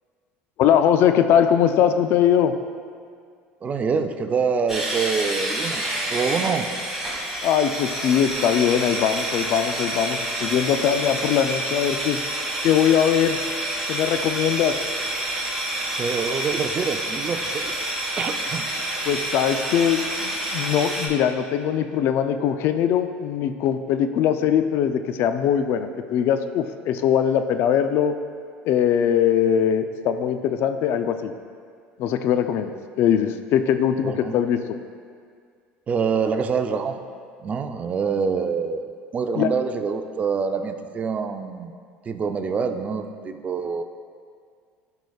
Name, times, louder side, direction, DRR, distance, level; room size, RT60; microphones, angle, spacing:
voice 1, 0.6-2.5 7.4-12.2 12.6-13.4 13.9-14.8 19.0-28.2 28.6-31.3 32.0-34.6 39.3-39.5, left 9 dB, 60° left, 9 dB, 0.4 m, -21 dB
voice 2, 3.6-6.7 16.0-17.7 18.2-18.7 34.0-34.4 35.9-37.0 37.4-38.8 39.1-41.7 42.1-43.8, right 5 dB, 35° right, 7 dB, 0.5 m, -26 dB
sound 1, 4.7-21.1, right 1 dB, 5° right, 1.8 m, -28 dB
13.0 x 4.8 x 2.3 m, 2.1 s
supercardioid pair, 105°, 4 cm